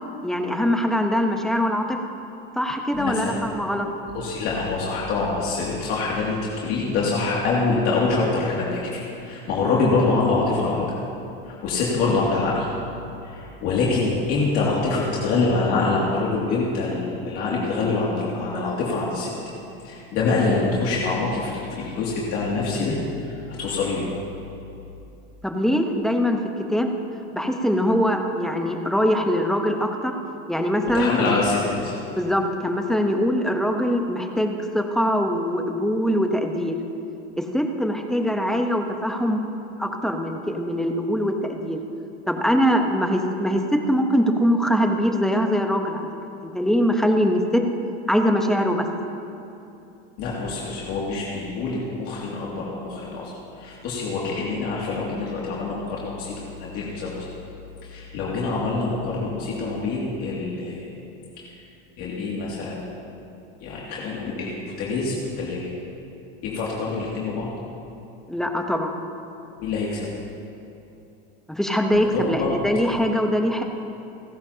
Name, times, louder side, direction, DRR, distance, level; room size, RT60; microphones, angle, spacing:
voice 1, 0.2-2.0 2.6-3.9 25.4-26.4 26.7-26.9 27.3-30.1 30.5-31.3 32.2-36.8 37.4-39.4 39.8-41.8 42.3-46.1 46.4-47.6 48.1-48.9 68.3-69.0 71.5-73.6, equal, ahead, 4 dB, 0.9 m, -22 dB
voice 2, 2.9-3.4 4.1-10.9 11.4-12.7 13.2-19.3 19.8-24.1 30.9-32.0 50.2-53.3 53.6-57.3 57.8-60.9 61.4-61.5 62.0-62.8 63.6-65.7 66.4-67.5 69.6-70.1 71.9-72.6, left 3 dB, 50° left, -5 dB, 2.4 m, -25 dB
30.0 x 10.5 x 2.9 m, 2.8 s
supercardioid pair, 140°, 30 cm